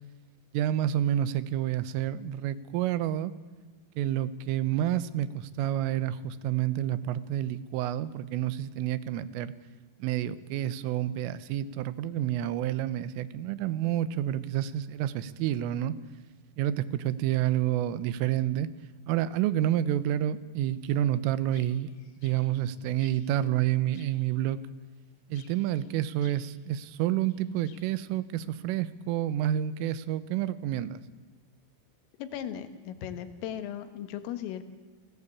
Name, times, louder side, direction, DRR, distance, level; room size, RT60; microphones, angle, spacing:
voice 1, 0.5-3.3 4.0-9.5 10.0-15.9 16.6-18.7 19.1-21.9 22.2-24.6 25.3-31.0, right 12 dB, 85° right, 16 dB, 3.6 m, -29 dB
sound 1, 20.6-23.4 23.9-24.4 25.3-26.6 27.3-28.0, left 6 dB, 70° left, 4.9 m, -59 dB
voice 2, 32.2-34.6, left 10 dB, 90° left, 10 dB, 4.2 m, -37 dB
29.0 x 18.0 x 8.6 m, 1.3 s
omnidirectional pair, 5.7 m